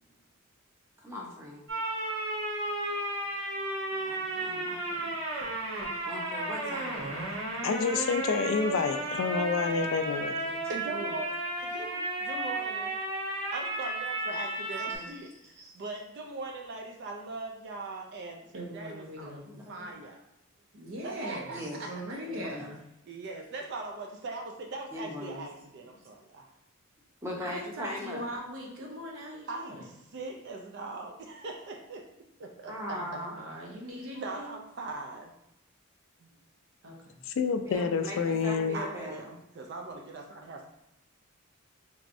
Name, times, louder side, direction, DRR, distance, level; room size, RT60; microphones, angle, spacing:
voice 1, 1.0-1.6 4.0-5.2 6.1-7.2 10.4-10.6 14.7-15.1 15.6-15.7 19.5-19.6 21.5-21.8 22.3-22.7 24.9-25.5 27.2-28.2 32.7-33.4 37.7-39.3, left 1 dB, 15° right, -3 dB, 0.6 m, -40 dB
sound 1, 1.7-15.0, right 1 dB, 85° right, 1.3 m, -33 dB
voice 2, 7.6-10.4 37.3-38.8, left 5 dB, 60° left, 8 dB, 0.3 m, -28 dB
voice 3, 10.7-11.3 11.6-13.0 13.3-19.4 19.7-20.2 21.0-21.9 23.1-26.5 29.5-32.0 32.4-33.1 34.1-35.3 36.2-36.3 38.7-40.7, right 3 dB, 50° right, 2 dB, 0.4 m, -40 dB
voice 4, 18.5-19.6 20.7-22.8 27.4-29.8 32.8-34.5 36.8-37.2, equal, 70° right, -1 dB, 0.8 m, -40 dB
3.5 x 3.1 x 2.5 m, 0.85 s
head